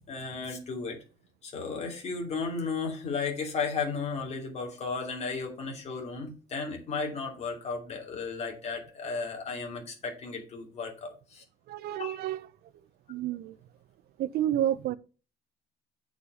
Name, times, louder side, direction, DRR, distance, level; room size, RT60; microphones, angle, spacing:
voice 1, 0.1-1.0 1.4-11.4 12.0-12.2, left 4 dB, 35° left, 3.0 m, -34 dB
voice 2, 11.7-12.5 13.1-13.6 14.2-15.0, right 12 dB, 55° right, 0.7 m, -30 dB
8.1 x 5.2 x 5.6 m
cardioid pair, 165°, 19 cm